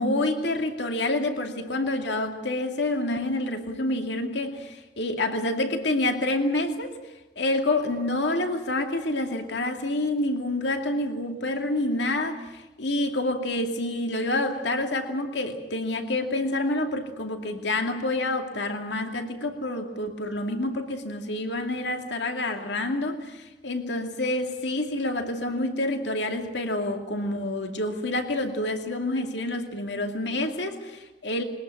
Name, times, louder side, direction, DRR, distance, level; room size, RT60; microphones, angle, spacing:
voice 1, 0.0-6.9 7.4-31.4, left 2 dB, 70° left, 5 dB, 2.4 m, -28 dB
22.0 x 20.0 x 9.1 m, 1.1 s
head